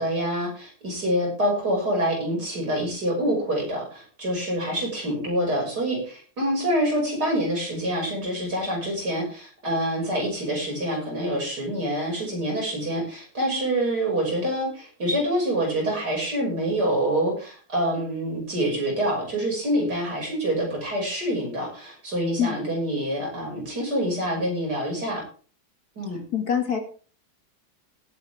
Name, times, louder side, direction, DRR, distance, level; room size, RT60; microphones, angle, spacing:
voice 1, 0.0-25.2 26.0-26.2, right 1 dB, 75° right, -1 dB, 6.8 m, -26 dB
voice 2, 26.3-26.8, left 8 dB, 65° left, 4 dB, 2.8 m, -24 dB
17.5 x 9.6 x 3.6 m, 0.40 s
omnidirectional pair, 1.7 m